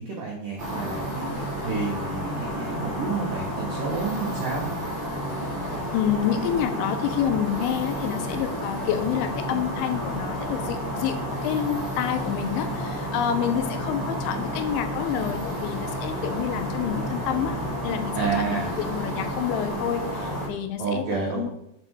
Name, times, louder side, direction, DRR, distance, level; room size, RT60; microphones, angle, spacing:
voice 1, 0.0-4.7 18.1-18.7 20.8-21.5, right 4 dB, 80° right, -3 dB, 1.9 m, -30 dB
sound 1, 0.6-20.5, equal, 35° right, 1.9 m, -31 dB
voice 2, 5.7-17.6 17.8-18.1 18.5-21.0 21.3-21.5, left 9 dB, 80° left, 8 dB, 2.9 m, -28 dB
sound 2, 8.0-18.4, left 2 dB, 20° right, 2.3 m, -40 dB
7.5 x 4.4 x 6.2 m, 0.77 s
omnidirectional pair, 5.5 m